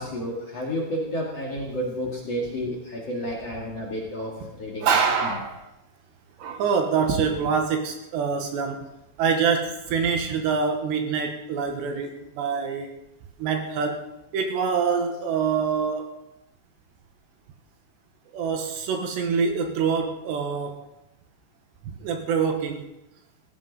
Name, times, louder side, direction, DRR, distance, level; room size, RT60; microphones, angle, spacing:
voice 1, 0.0-4.9 5.2-5.3, equal, 45° left, -3 dB, 2.5 m, -31 dB
voice 2, 4.8-5.6 6.4-8.9 9.2-12.9 13.4-14.0 14.3-16.1 18.3-20.8 21.8-22.8, right 6 dB, 70° right, 4 dB, 3.3 m, -25 dB
16.0 x 15.5 x 4.1 m, 0.89 s
omnidirectional pair, 5.5 m